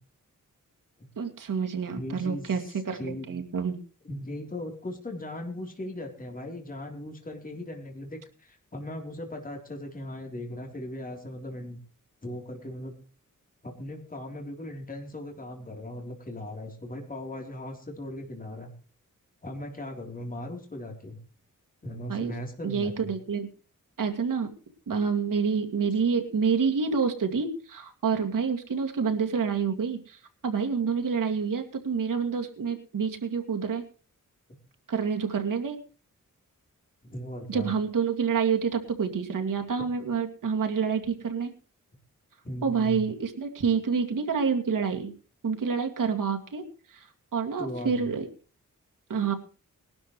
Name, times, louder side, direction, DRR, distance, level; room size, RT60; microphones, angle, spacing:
voice 1, 1.2-2.6 2.9-3.8 22.1-22.3 22.6-23.5 24.0-24.5 24.9-33.8 34.9-35.8 37.5-41.5 42.6-45.1 45.4-47.1 47.3-48.3 49.1-49.3, right 6 dB, 80° right, 4 dB, 2.4 m, -28 dB
voice 2, 2.0-3.3 4.0-11.8 12.2-13.0 13.6-18.7 19.4-21.2 21.8-23.1 37.0-37.7 42.4-43.0 47.6-48.1, left 1 dB, 25° left, 1 dB, 3.6 m, -38 dB
21.0 x 12.0 x 3.2 m, 0.37 s
wide cardioid pair, 115°, 32 cm